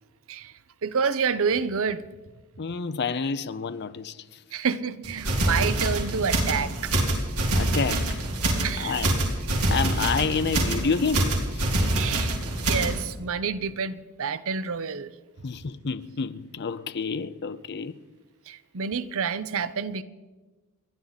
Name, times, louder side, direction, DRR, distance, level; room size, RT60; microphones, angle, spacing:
voice 1, 0.8-2.0 4.5-6.9 8.6-9.0 11.9-15.1 18.5-20.0, right 6 dB, 65° right, 0.7 m, -28 dB
voice 2, 2.6-4.4 7.5-8.2 8.8-9.1 9.7-11.6 15.4-18.0, left 5 dB, 50° left, 0.6 m, -29 dB
sound 1, 5.0-13.0, right 1 dB, 90° right, 3.3 m, -25 dB
29.5 x 11.5 x 4.1 m
head